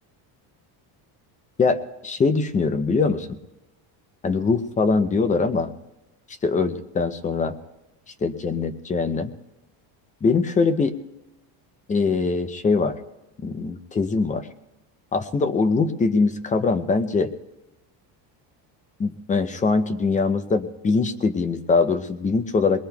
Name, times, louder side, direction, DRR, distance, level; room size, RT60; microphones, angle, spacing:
voice 1, 1.6-3.3 4.2-5.7 6.4-7.5 8.2-9.3 10.2-10.9 11.9-12.9 13.4-14.5 15.1-17.3 19.0-22.8, left 4 dB, 15° left, 10 dB, 0.5 m, -22 dB
28.5 x 21.0 x 2.3 m, 1.0 s
cardioid pair, 155°, 49 cm